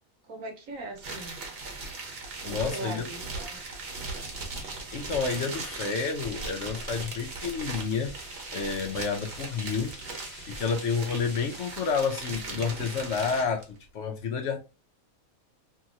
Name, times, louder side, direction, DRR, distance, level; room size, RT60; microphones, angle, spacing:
voice 1, 0.2-1.4 2.4-3.6, right 3 dB, 70° right, 1.1 m, -40 dB
sound 1, 1.0-13.6, right 3 dB, 50° right, 1.0 m, -38 dB
voice 2, 2.4-3.1 4.9-8.1 8.5-10.2 10.5-14.6, left 5 dB, 65° left, 0.8 m, -30 dB
sound 2, 3.2-12.8, left 1 dB, 35° left, 1.1 m, -49 dB
2.8 x 2.7 x 2.5 m
omnidirectional pair, 1.5 m